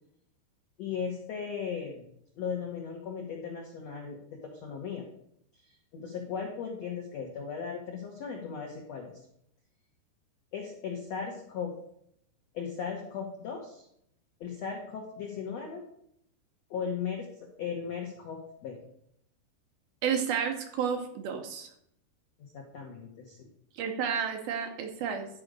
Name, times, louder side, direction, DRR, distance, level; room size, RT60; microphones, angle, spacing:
voice 1, 0.8-2.0 2.3-5.0 5.9-9.1 10.5-11.7 12.5-13.9 14.4-15.8 16.7-17.3 17.6-18.8 22.4-23.4, left 6 dB, 75° left, 0 dB, 1.5 m, -37 dB
voice 2, 20.0-21.7 23.8-25.3, right 7 dB, 70° right, 4 dB, 2.5 m, -31 dB
12.5 x 5.0 x 6.6 m, 0.73 s
omnidirectional pair, 5.0 m